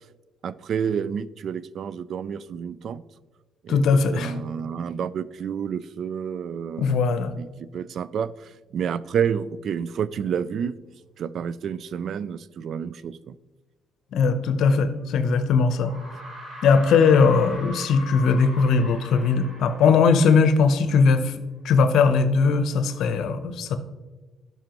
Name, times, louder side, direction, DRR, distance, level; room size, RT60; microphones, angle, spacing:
voice 1, 0.4-3.0 3.6-7.0 7.4-10.8 11.2-13.4, right 7 dB, 65° right, 17 dB, 0.3 m, -29 dB
voice 2, 3.7-4.3 6.8-7.3 14.1-15.9 16.6-21.3 21.6-23.8, left 5 dB, 80° left, 10 dB, 0.7 m, -19 dB
sound 1, 15.0-15.1 15.8-21.0, equal, 35° right, 2.5 m, -41 dB
12.0 x 5.5 x 3.0 m, 1.3 s
cardioid pair, 90°, 0 cm